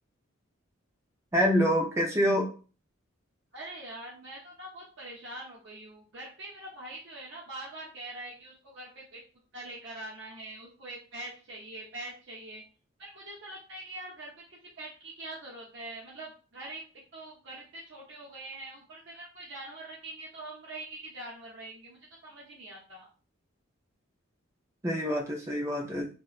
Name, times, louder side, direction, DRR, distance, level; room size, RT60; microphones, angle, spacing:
voice 1, 1.3-2.5 24.8-26.1, equal, 15° right, 0 dB, 0.4 m, -26 dB
voice 2, 3.5-9.2 9.5-12.6 13.0-16.8 17.1-23.1, right 2 dB, 60° right, -5 dB, 0.6 m, -44 dB
2.8 x 2.1 x 2.4 m, 0.38 s
head